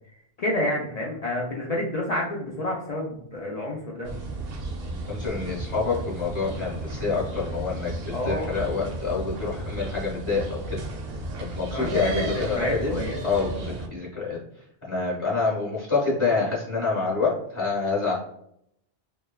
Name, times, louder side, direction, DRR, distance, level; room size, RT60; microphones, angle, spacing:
voice 1, 0.4-4.1 8.1-8.6 11.7-13.2, left 1 dB, 55° left, -3 dB, 0.5 m, -29 dB
sound 1, 4.0-13.9, right 2 dB, 75° right, 0.8 m, -34 dB
voice 2, 5.1-10.8 11.4-12.9 13.2-14.4 14.8-18.1, left 4 dB, 30° left, -8 dB, 0.9 m, -27 dB
3.0 x 2.2 x 2.2 m, 0.74 s
omnidirectional pair, 1.0 m